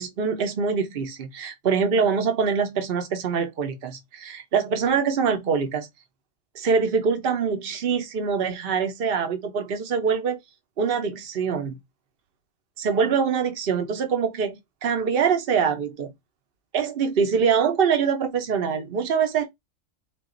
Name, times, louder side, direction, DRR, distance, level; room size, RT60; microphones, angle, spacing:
voice 1, 0.0-5.9 6.5-10.4 10.8-11.8 12.8-16.1 16.7-19.4, right 6 dB, 55° right, 1.0 m, -24 dB
3.8 x 2.6 x 3.8 m
omnidirectional pair, 1.2 m